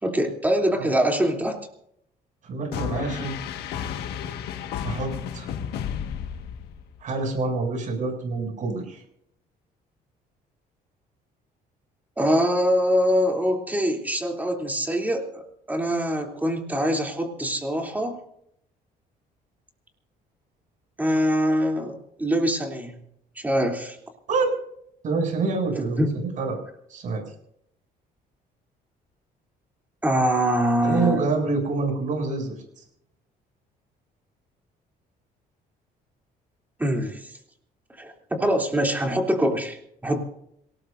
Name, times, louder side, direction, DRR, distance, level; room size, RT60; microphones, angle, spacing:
voice 1, 0.0-1.6 12.2-18.2 21.0-22.9 23.4-24.0 25.8-26.1 30.0-31.3 36.8-37.3 38.0-39.8 40.0-40.2, equal, 10° right, 1 dB, 3.1 m, -24 dB
voice 2, 2.4-3.3 4.8-5.5 7.0-9.0 24.3-24.5 25.0-26.6 26.9-27.2 30.8-32.8, right 3 dB, 50° right, 2 dB, 7.3 m, -27 dB
sound 1, 2.7-7.0, left 8 dB, 85° left, 1.7 m, -32 dB
27.0 x 18.5 x 2.7 m, 0.73 s
cardioid pair, 150°, 16 cm